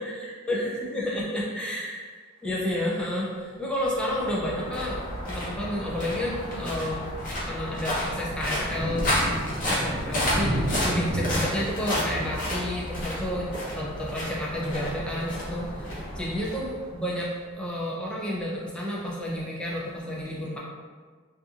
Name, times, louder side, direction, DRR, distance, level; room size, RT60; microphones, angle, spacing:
voice 1, 0.0-7.1 7.4-20.6, left 1 dB, 5° left, -5 dB, 0.4 m, -31 dB
sound 1, 3.8-17.2, left 1 dB, 40° left, 0.7 m, -31 dB
Thunder, 5.2-5.3 5.8-6.0 6.4-17.0, right 1 dB, 65° right, 0.6 m, -35 dB
2.8 x 2.5 x 2.3 m, 1.5 s
head